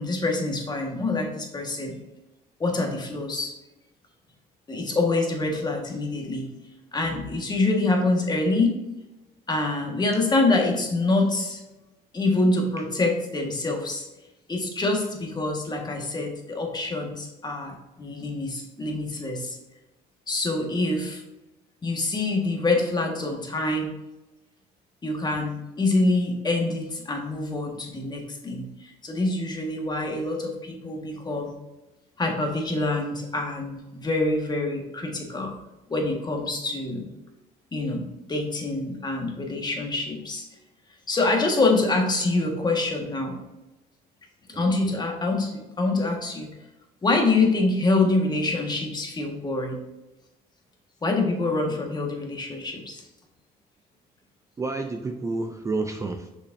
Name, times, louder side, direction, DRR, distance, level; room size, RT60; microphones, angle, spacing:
voice 1, 0.0-2.0 2.6-3.5 4.7-6.5 6.9-8.7 9.5-11.6 12.1-14.1 14.5-19.6 20.3-21.2 21.8-24.0 25.0-31.5 32.2-35.5 35.9-37.1 37.7-40.4 41.1-43.4 44.5-46.5 47.0-49.8 51.0-53.0, left 2 dB, 25° left, 2 dB, 1.5 m, -25 dB
voice 2, 44.5-45.0 54.6-56.3, right 3 dB, 15° right, 5 dB, 0.5 m, -30 dB
6.6 x 5.8 x 2.6 m, 1.0 s
cardioid pair, 110°, 17 cm